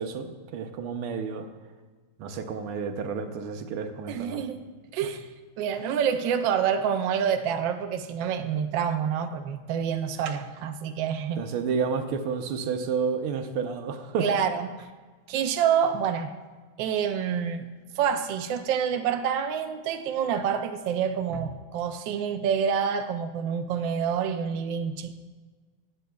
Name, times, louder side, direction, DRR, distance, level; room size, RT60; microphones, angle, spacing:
voice 1, 0.0-1.5 2.2-4.4 11.4-14.2, right 6 dB, 85° right, 6 dB, 1.7 m, -30 dB
voice 2, 4.1-5.3 5.6-11.5 14.2-14.7 15.3-16.3 16.8-17.7 18.0-25.1, right 7 dB, 70° right, 7 dB, 1.3 m, -27 dB
19.0 x 8.5 x 2.3 m, 1.4 s
omnidirectional pair, 2.3 m